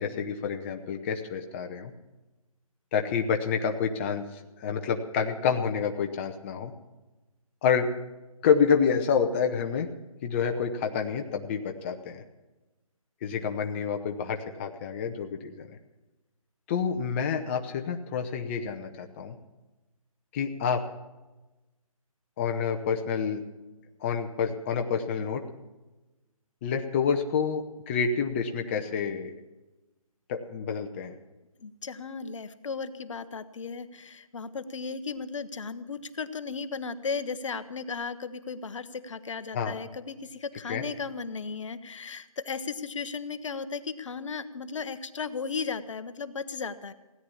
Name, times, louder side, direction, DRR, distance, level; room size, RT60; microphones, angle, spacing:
voice 1, 0.0-1.9 2.9-6.7 7.6-7.9 8.4-9.9 10.2-12.2 13.2-15.7 16.7-19.4 20.3-20.8 22.4-23.4 24.0-25.4 26.6-29.3 30.3-31.1 39.5-39.8 40.7-40.8, left 6 dB, 20° left, 5 dB, 0.8 m, -28 dB
voice 2, 31.6-46.9, left 5 dB, 55° left, 13 dB, 1.0 m, -35 dB
17.0 x 9.8 x 7.1 m, 1.1 s
hypercardioid pair, 160°, 18 cm